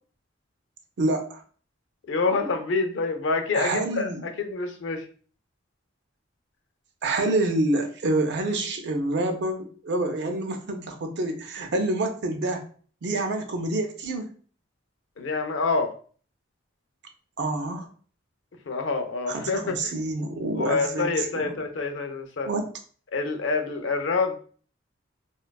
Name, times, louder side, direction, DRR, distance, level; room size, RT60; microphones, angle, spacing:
voice 1, 1.0-1.4 3.5-4.3 7.0-12.6 13.0-14.3 17.4-17.9 19.3-21.6 22.5-22.7, right 2 dB, 60° right, 5 dB, 0.4 m, -27 dB
voice 2, 2.1-5.0 15.2-15.9 18.7-19.9 20.5-22.5 23.1-24.4, left 4 dB, 65° left, 7 dB, 0.4 m, -27 dB
2.5 x 2.2 x 2.2 m, 0.43 s
head